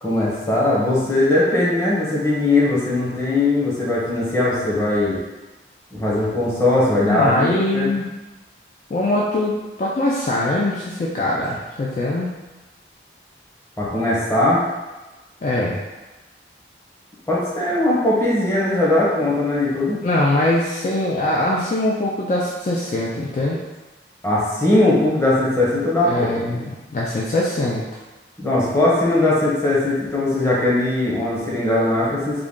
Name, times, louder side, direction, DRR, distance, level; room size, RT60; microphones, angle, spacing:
voice 1, 0.0-5.2 5.9-7.9 13.8-14.7 17.3-20.0 24.2-26.3 28.4-32.4, left 2 dB, 15° left, -7 dB, 0.9 m, -19 dB
voice 2, 7.0-8.1 8.9-12.3 15.4-15.8 20.0-23.6 26.0-27.8, left 1 dB, 40° left, -4 dB, 0.3 m, -22 dB
3.7 x 2.2 x 3.6 m, 1.1 s
head